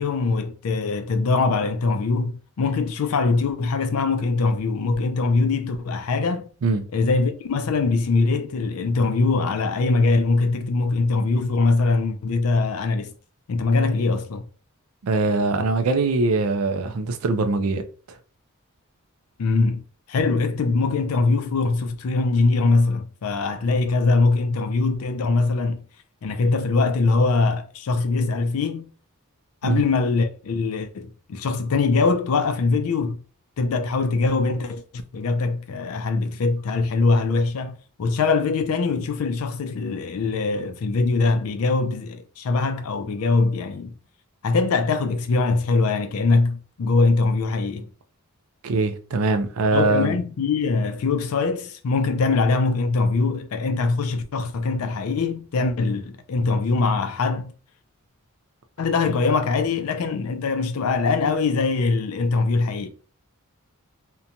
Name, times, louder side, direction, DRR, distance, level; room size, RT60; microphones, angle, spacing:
voice 1, 0.0-6.5 6.9-13.1 13.5-14.4 19.4-19.8 20.1-25.8 26.2-28.9 29.6-33.2 33.6-43.9 44.4-47.9 49.7-57.5 58.8-62.9, left 3 dB, 70° left, 0.4 m, -22 dB
voice 2, 15.0-17.8 29.6-29.8 48.6-50.2, right 3 dB, 70° right, 0.4 m, -22 dB
2.9 x 2.2 x 2.5 m
head